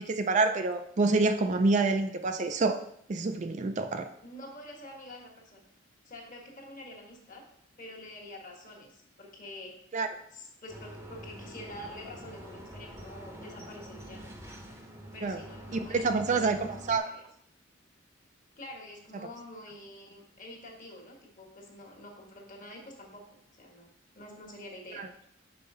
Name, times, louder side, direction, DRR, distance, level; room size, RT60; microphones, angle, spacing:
voice 1, 0.0-2.8 3.1-4.1 9.9-10.1 15.2-15.4 15.7-17.1 24.9-25.1, right 3 dB, 35° right, 7 dB, 0.4 m, -27 dB
voice 2, 4.2-5.7 6.0-7.4 7.8-9.7 10.3-14.2 15.1-17.2 18.6-25.0, left 1 dB, 40° left, 1 dB, 1.5 m, -47 dB
sound 1, 10.7-17.0, equal, 15° right, 0.8 m, -46 dB
5.5 x 4.5 x 5.5 m, 0.71 s
head